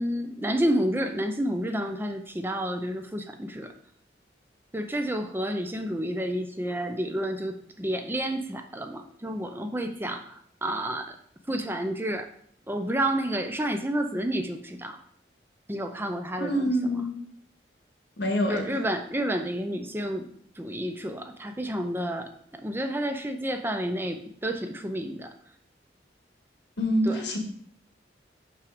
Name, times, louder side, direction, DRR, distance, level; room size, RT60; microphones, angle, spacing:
voice 1, 0.0-3.7 4.7-11.2 11.5-12.3 12.7-15.0 15.7-17.0 18.5-20.3 20.6-25.3 27.0-27.2, right 1 dB, 10° right, 6 dB, 0.5 m, -30 dB
voice 2, 16.4-17.2 18.2-18.7 26.8-27.4, equal, 70° left, 2 dB, 1.7 m, -26 dB
6.3 x 5.8 x 5.1 m, 0.62 s
head